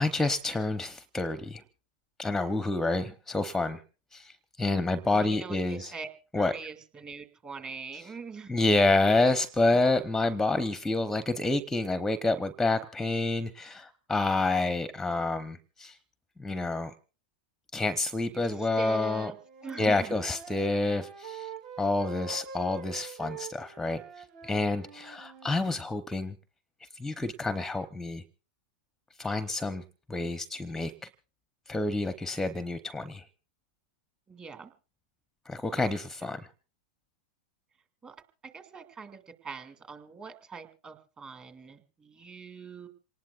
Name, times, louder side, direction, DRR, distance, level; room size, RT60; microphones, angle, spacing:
voice 1, 0.0-1.6 2.2-3.8 4.1-5.9 6.3-6.5 8.5-16.0 16.4-16.9 17.7-19.3 19.8-21.5 21.8-24.0 24.4-26.4 27.0-28.2 29.2-29.8 30.1-31.1 31.7-33.2 35.5-36.4, left 2 dB, 5° left, 0.8 m, -28 dB
voice 2, 5.1-6.1 6.3-8.5 9.7-9.8 18.3-19.4 19.6-20.2 34.3-34.7 38.0-38.2 38.4-42.9, right 5 dB, 25° right, 2.3 m, -43 dB
Wind instrument woodwind instrument, 19.2-25.6, right 5 dB, 55° right, 2.5 m, -44 dB
27.5 x 19.0 x 2.4 m
hypercardioid pair, 105°, 4 cm